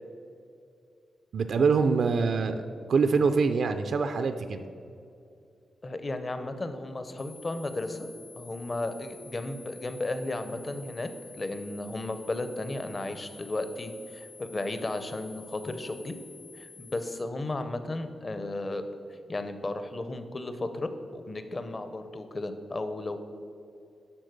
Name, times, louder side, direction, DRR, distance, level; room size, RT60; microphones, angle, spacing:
voice 1, 1.3-4.6, right 5 dB, 60° right, 8 dB, 0.4 m, -25 dB
voice 2, 5.8-8.1 8.4-11.1 11.4-16.2 16.5-18.9 19.3-23.2, left 2 dB, 25° left, 9 dB, 0.6 m, -34 dB
sound 1, 7.2-17.2, left 4 dB, 75° left, 1.2 m, -50 dB
11.5 x 3.9 x 6.6 m, 2.5 s
wide cardioid pair, 170°, 0 cm